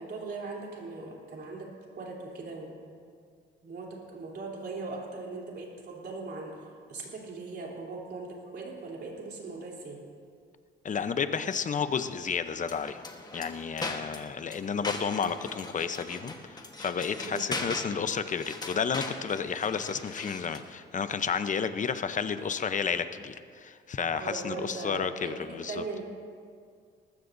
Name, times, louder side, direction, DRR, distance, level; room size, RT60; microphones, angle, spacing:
voice 1, 0.0-1.7 2.0-2.9 3.6-6.5 6.9-10.0 17.2-17.4 24.1-26.0, right 3 dB, 55° right, -2 dB, 3.5 m, -39 dB
voice 2, 10.8-13.0 13.3-25.8, left 6 dB, 40° left, 11 dB, 0.7 m, -31 dB
sound 1, 12.6-20.7, left 2 dB, 20° left, 1.3 m, -40 dB
19.5 x 15.0 x 2.7 m, 2.1 s
cardioid pair, 90°, 20 cm